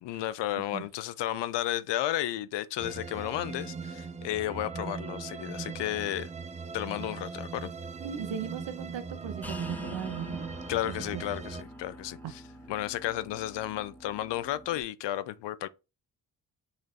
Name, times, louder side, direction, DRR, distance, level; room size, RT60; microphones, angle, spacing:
voice 1, 0.0-6.3 6.7-7.7 10.7-12.2 12.7-15.7, left 13 dB, 65° left, 0.5 m, -33 dB
sound 1, 2.8-11.6, right 4 dB, 15° right, 0.4 m, -39 dB
voice 2, 8.0-10.4 11.1-11.2 12.2-12.3, right 8 dB, 70° right, 0.8 m, -37 dB
sound 2, 9.4-14.8, equal, 5° left, 0.8 m, -46 dB
3.9 x 3.2 x 2.6 m
supercardioid pair, 50°, 46 cm